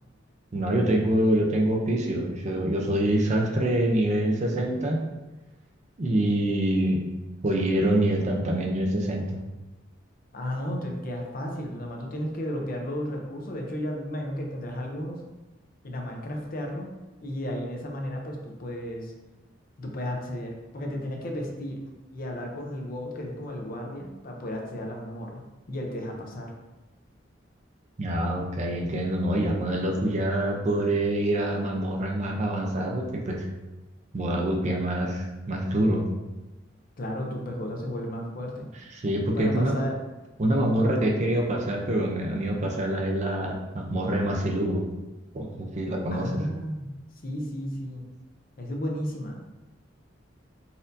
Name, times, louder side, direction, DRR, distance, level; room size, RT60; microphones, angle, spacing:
voice 1, 0.5-5.1 6.0-7.0 7.4-9.3 28.0-33.5 34.1-36.0 38.9-39.7 40.4-44.8 45.3-46.4, right 1 dB, 40° right, 0 dB, 0.5 m, -25 dB
voice 2, 10.3-15.2 15.8-16.9 17.2-19.1 19.8-21.8 22.1-25.4 25.7-26.5 37.0-38.7 39.3-39.9 40.8-40.9 46.1-46.9 47.2-48.0 48.6-49.4, equal, 50° left, 1 dB, 0.6 m, -33 dB
4.1 x 2.6 x 2.6 m, 1.1 s
head